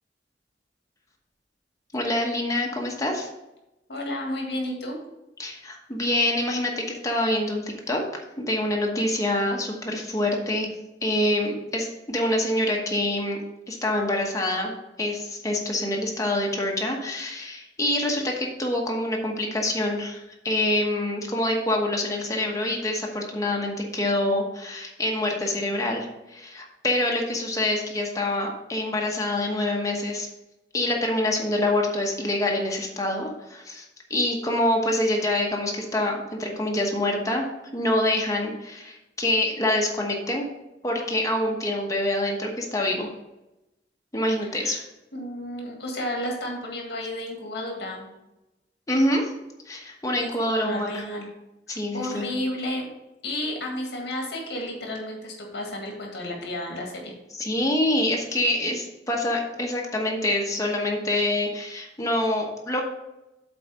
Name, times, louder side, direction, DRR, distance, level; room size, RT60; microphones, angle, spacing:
voice 1, 1.9-3.3 5.4-8.0 8.4-10.7 11.0-13.4 13.7-30.3 30.7-37.4 37.7-40.5 40.8-43.1 44.1-44.8 48.9-49.3 49.7-51.0 51.7-52.3 57.4-62.8, left 1 dB, 20° left, 0 dB, 1.1 m, -26 dB
voice 2, 3.9-5.0 44.6-44.8 45.1-48.1 50.2-51.3 51.7-52.9 53.2-57.1, left 1 dB, 65° left, 0 dB, 1.8 m, -32 dB
7.8 x 4.1 x 5.4 m, 0.95 s
head